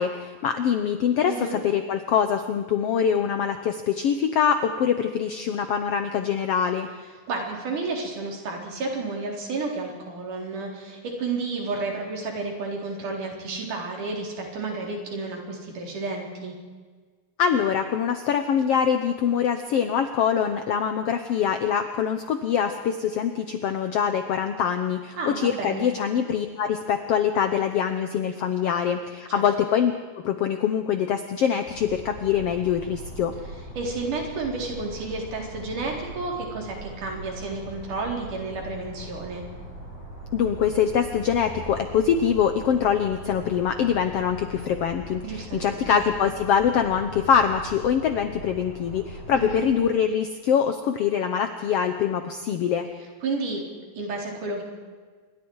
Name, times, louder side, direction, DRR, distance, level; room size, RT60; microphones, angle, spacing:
voice 1, 0.0-6.9 17.4-29.9 30.2-33.3 40.3-52.9, left 8 dB, 75° left, 8 dB, 1.4 m, -24 dB
voice 2, 1.3-1.6 7.3-16.5 25.2-25.9 29.4-29.5 33.8-39.4 45.2-46.0 49.3-49.6 53.2-53.6 53.9-54.6, right 3 dB, 65° right, 0 dB, 5.4 m, -31 dB
sound 1, 31.7-49.7, right 1 dB, 60° left, 9.5 m, -40 dB
26.5 x 23.5 x 4.8 m, 1.5 s
omnidirectional pair, 4.0 m